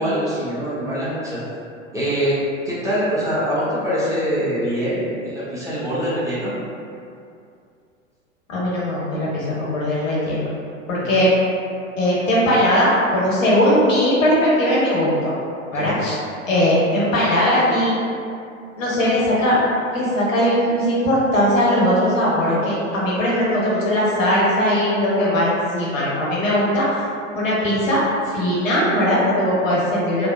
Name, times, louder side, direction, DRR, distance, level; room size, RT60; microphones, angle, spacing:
voice 1, 0.0-1.4 1.9-2.3 2.6-6.5 11.0-11.2 15.7-16.0, equal, 10° right, -10 dB, 0.8 m, -23 dB
voice 2, 8.5-10.4 10.9-11.3 12.0-15.3 15.7-16.2 16.5-17.9 18.8-19.6 19.9-26.9 27.3-28.0 28.3-30.3, equal, 80° left, -7 dB, 1.0 m, -19 dB
3.4 x 2.0 x 2.2 m, 2.5 s
hypercardioid pair, 95°, 38 cm